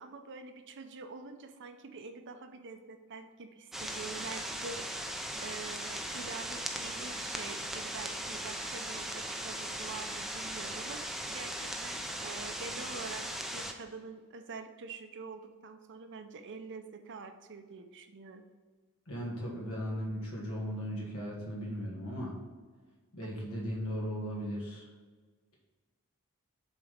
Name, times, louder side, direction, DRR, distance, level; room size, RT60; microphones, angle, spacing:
voice 1, 0.0-5.0 5.4-18.4 23.2-23.3, right 4 dB, 55° right, 7 dB, 0.6 m, -46 dB
sound 1, 3.7-13.7, right 1 dB, ahead, 0.5 m, -38 dB
voice 2, 19.1-22.4 23.1-24.8, equal, 70° left, -2 dB, 1.6 m, -37 dB
7.0 x 4.1 x 5.1 m, 1.4 s
head